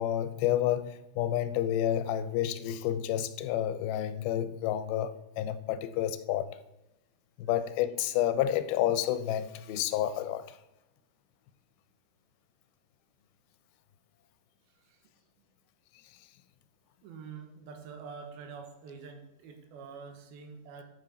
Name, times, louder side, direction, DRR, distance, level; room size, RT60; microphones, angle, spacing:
voice 1, 0.0-6.6 7.4-10.6, left 11 dB, 90° left, 2.5 m, -30 dB
voice 2, 17.0-20.8, right 5 dB, 90° right, 3.0 m, -46 dB
12.5 x 5.2 x 4.1 m
omnidirectional pair, 4.2 m